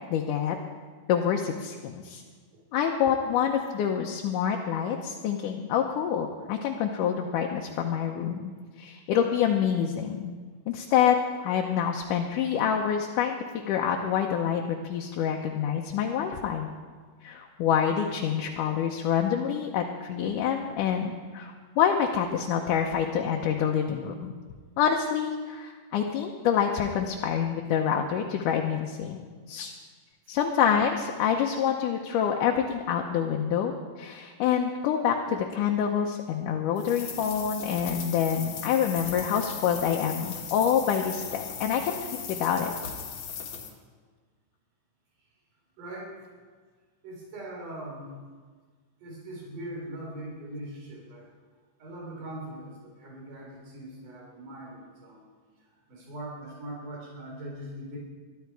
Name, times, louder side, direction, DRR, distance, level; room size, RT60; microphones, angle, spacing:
voice 1, 0.1-0.6 1.1-2.2 2.7-8.5 8.8-10.4 10.7-16.7 17.2-24.3 24.8-29.7 30.3-42.7, left 8 dB, 75° left, 1 dB, 2.3 m, -27 dB
sound 1, 36.8-43.7, left 7 dB, 60° left, 2.5 m, -38 dB
voice 2, 45.8-46.2 47.0-48.1 49.0-51.3 51.8-55.3 55.7-58.0, right 1 dB, 70° right, -3 dB, 5.3 m, -41 dB
21.5 x 12.5 x 4.7 m, 1.5 s
omnidirectional pair, 3.8 m